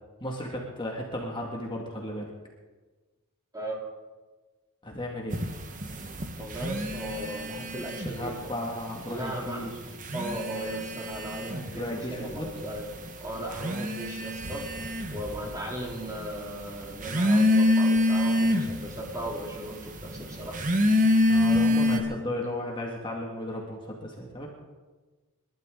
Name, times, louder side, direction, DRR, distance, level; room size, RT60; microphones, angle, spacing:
voice 1, 0.2-2.3 4.8-5.4 8.2-9.8 10.1-10.4 11.7-12.5 21.3-24.5, left 1 dB, 25° left, -1 dB, 2.1 m, -34 dB
sound 1, 5.3-8.4 8.7-9.4 9.9-22.0, left 1 dB, 40° right, 1.5 m, -26 dB
voice 2, 6.4-8.4 9.1-9.7 10.1-12.8 13.2-14.6 15.1-20.6, right 1 dB, 15° right, -2 dB, 3.2 m, -37 dB
28.0 x 12.5 x 3.9 m, 1.3 s
head